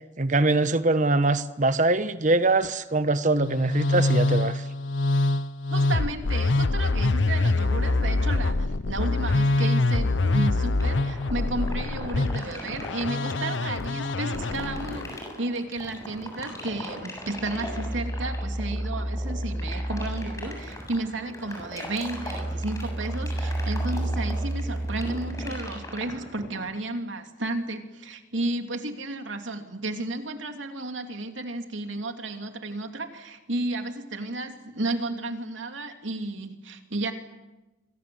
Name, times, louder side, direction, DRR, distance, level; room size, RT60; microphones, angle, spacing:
voice 1, 0.2-4.6, right 2 dB, 40° right, 12 dB, 1.2 m, -23 dB
Musical instrument, 3.3-15.1, left 2 dB, 80° left, 0.9 m, -25 dB
voice 2, 5.7-37.1, right 2 dB, 85° right, 5 dB, 3.0 m, -33 dB
sound 1, 10.8-26.7, left 1 dB, 15° left, 7.6 m, -39 dB
sound 2, 17.4-21.2 21.6-26.2, right 1 dB, 15° right, 0.9 m, -31 dB
27.5 x 24.5 x 7.9 m, 1.1 s
head